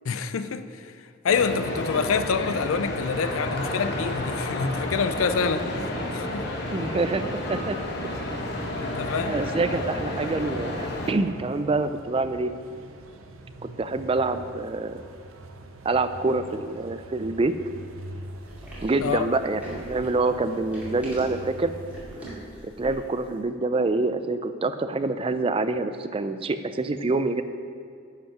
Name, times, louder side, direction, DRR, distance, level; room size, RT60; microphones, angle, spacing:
voice 1, 0.0-1.0 1.2-6.4 8.7-9.4 19.0-19.3, left 5 dB, 85° left, 0.5 m, -27 dB
sound 1, 1.3-11.1, left 1 dB, 55° left, 1.1 m, -31 dB
sound 2, 3.0-22.4, right 2 dB, 85° right, 0.7 m, -44 dB
voice 2, 6.7-7.2 7.5-7.8 9.2-12.5 13.8-15.0 15.8-17.6 18.8-21.7 22.6-27.4, right 3 dB, 25° right, 0.3 m, -26 dB
sound 3, 18.4-23.2, equal, 5° right, 2.2 m, -41 dB
10.5 x 5.3 x 5.9 m
head